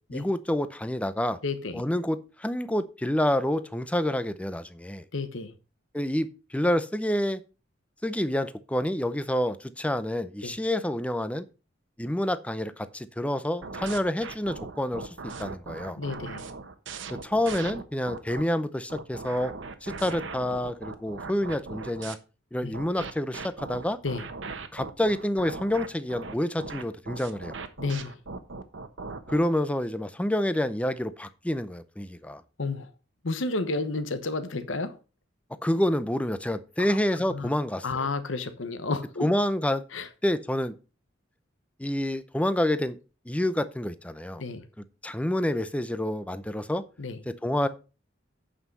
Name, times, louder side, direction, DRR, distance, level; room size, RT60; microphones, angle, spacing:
voice 1, 0.1-1.4 1.7-5.0 5.9-7.4 8.0-11.4 12.0-16.0 17.2-19.5 19.8-22.2 22.5-24.0 24.7-27.6 29.3-32.4 35.6-38.1 39.2-39.8 40.2-40.8 41.8-43.0 43.3-44.4 45.0-46.8 47.3-47.7, left 1 dB, 5° left, 13 dB, 0.5 m, -28 dB
voice 2, 1.4-1.8 5.1-5.5 10.4-10.6 16.0-16.5 22.6-22.7 24.0-24.2 27.8-28.2 32.6-32.9 33.2-34.9 36.8-37.0 37.3-37.5 37.8-39.2 39.9-40.1 44.4-44.6 47.0-47.2, left 3 dB, 75° left, 11 dB, 1.1 m, -31 dB
sound 1, 13.6-18.4 18.9-22.1 22.7-29.4, right 4 dB, 70° right, 1.1 m, -39 dB
8.7 x 5.6 x 5.3 m, 0.33 s
head